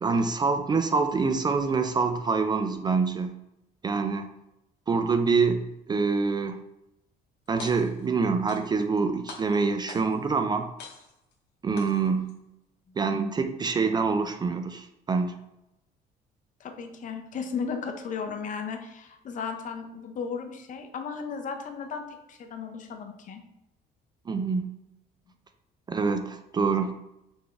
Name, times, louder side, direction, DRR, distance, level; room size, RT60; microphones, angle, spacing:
voice 1, 0.0-3.4 3.8-4.3 4.9-6.6 7.5-10.7 11.6-12.3 13.0-15.4 24.3-24.7 25.9-26.9, right 4 dB, 25° right, 7 dB, 0.3 m, -26 dB
sound 1, 7.5-8.1 8.5-9.0 9.3-10.3 10.8-11.3 11.8-12.3, left 5 dB, 85° left, 0.9 m, -44 dB
voice 2, 16.6-23.4, left 5 dB, 50° left, 5 dB, 0.7 m, -35 dB
4.0 x 3.5 x 3.3 m, 0.88 s
cardioid pair, 110°, 17 cm